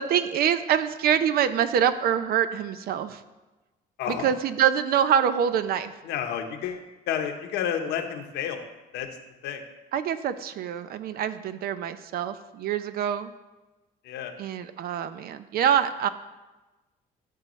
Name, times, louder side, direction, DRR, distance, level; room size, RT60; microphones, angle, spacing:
voice 1, 0.0-3.2 4.1-5.9 9.9-13.3 14.4-16.1, right 9 dB, 65° right, 12 dB, 0.6 m, -25 dB
voice 2, 4.0-4.3 6.0-8.6 8.9-9.1 9.4-9.6 14.0-14.3, left 8 dB, 85° left, 5 dB, 1.1 m, -30 dB
13.0 x 6.9 x 3.2 m, 1.1 s
cardioid pair, 110°, 17 cm